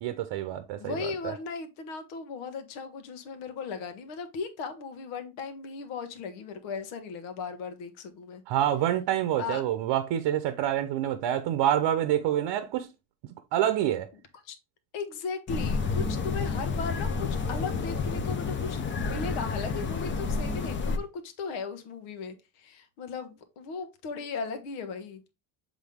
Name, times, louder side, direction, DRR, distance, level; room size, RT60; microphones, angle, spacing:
voice 1, 0.0-0.9 8.5-12.9 13.5-14.1, right 11 dB, 60° right, 0.8 m, -27 dB
voice 2, 0.8-8.4 9.4-9.6 14.4-14.6 14.9-25.3, left 5 dB, 80° left, 1.3 m, -37 dB
sound 1, 15.5-21.0, left 4 dB, 25° left, 0.6 m, -30 dB
7.2 x 3.7 x 3.6 m
cardioid pair, 135°, 48 cm